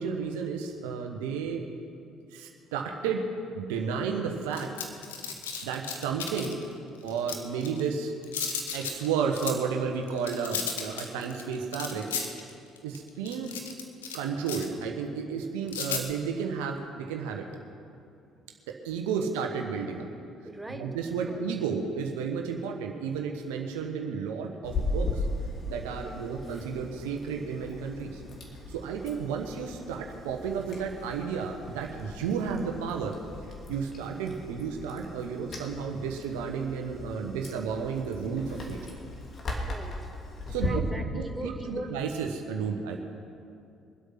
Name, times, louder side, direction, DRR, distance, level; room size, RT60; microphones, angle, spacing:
voice 1, 0.0-1.6 2.3-3.2 3.5-4.7 5.6-6.6 7.0-8.1 8.7-12.1 12.8-13.5 14.1-17.5 18.7-20.1 20.7-25.3 25.7-28.2 28.7-33.2 33.7-38.8 40.5-40.8 41.1-43.0, right 6 dB, 75° right, 3 dB, 1.2 m, -32 dB
sound 1, 4.5-6.6 7.1-7.9 8.2-9.1 9.4-9.6 10.1-14.2 14.5-14.8 15.7-16.0, left 6 dB, 80° left, 1.1 m, -34 dB
voice 2, 20.4-21.4 26.0-26.4 39.6-40.1 40.6-41.9, right 1 dB, 10° right, 5 dB, 1.7 m, -40 dB
Chewing mastication, 24.6-40.7, left 2 dB, 45° left, 2.7 m, -38 dB
23.0 x 8.3 x 5.9 m, 2.5 s
figure-of-eight pair, 50°, 0 cm